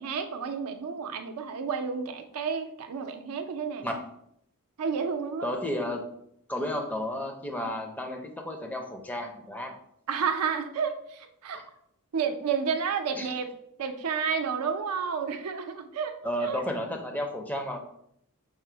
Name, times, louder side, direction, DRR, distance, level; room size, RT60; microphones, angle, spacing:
voice 1, 0.0-3.9 4.8-5.5 10.1-11.6 12.1-13.5 13.8-16.6, right 6 dB, 80° right, 7 dB, 0.5 m, -31 dB
voice 2, 5.4-6.0 6.5-9.7 11.5-11.6 13.2-13.3 16.2-17.8, left 1 dB, 5° left, 3 dB, 0.5 m, -32 dB
4.8 x 2.0 x 4.4 m, 0.72 s
head